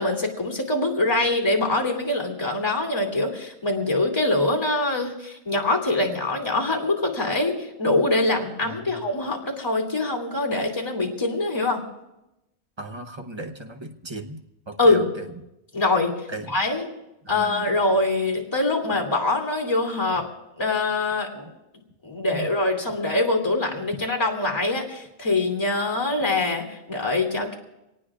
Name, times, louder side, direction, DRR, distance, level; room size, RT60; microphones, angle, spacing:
voice 1, 0.0-11.8 14.8-15.1 15.7-16.8 17.3-20.3 20.6-21.5 22.0-27.5, left 2 dB, 20° left, 1 dB, 2.7 m, -24 dB
voice 2, 8.6-9.0 12.8-15.3 16.3-16.6 17.3-17.7 22.3-22.5, right 2 dB, 25° right, 5 dB, 0.8 m, -36 dB
25.0 x 18.5 x 2.4 m, 0.90 s
omnidirectional pair, 1.4 m